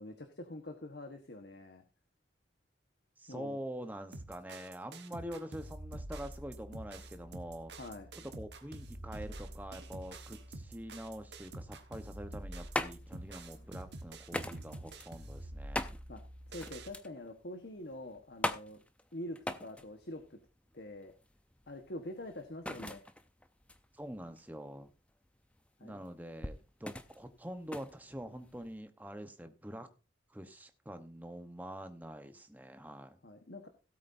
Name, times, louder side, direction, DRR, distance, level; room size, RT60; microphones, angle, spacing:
voice 1, 0.0-1.8 3.3-3.6 7.8-8.1 13.1-13.2 16.1-16.2 16.5-18.8 19.1-20.4 20.7-21.1 21.7-23.0 25.8-26.0 33.2-33.7, left 1 dB, 60° left, 5 dB, 1.3 m, -45 dB
voice 2, 3.2-7.7 8.2-15.9 23.9-24.9 25.8-29.9 30.3-33.2, equal, 10° right, 7 dB, 0.9 m, -45 dB
sound 1, 4.1-16.9, right 1 dB, 65° right, 1.4 m, -47 dB
sound 2, 12.2-28.8, left 1 dB, 5° left, 0.6 m, -42 dB
17.0 x 8.5 x 2.6 m, 0.31 s
head